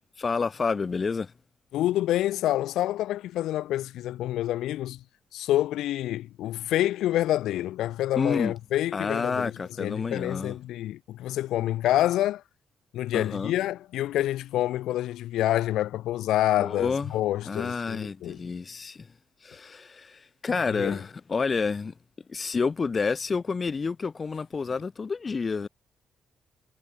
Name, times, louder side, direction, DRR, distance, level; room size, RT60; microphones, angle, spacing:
voice 1, 0.2-1.3 8.2-8.5 8.9-10.5 13.1-13.5 16.6-17.1 17.4-19.1 19.4-21.9 22.3-25.7, left 4 dB, 35° left, 2.7 m, -29 dB
voice 2, 1.7-5.0 5.3-9.5 9.8-12.4 12.9-18.4 20.7-21.0, left 14 dB, 85° left, 0.4 m, -27 dB
cardioid pair, 90°, 0 cm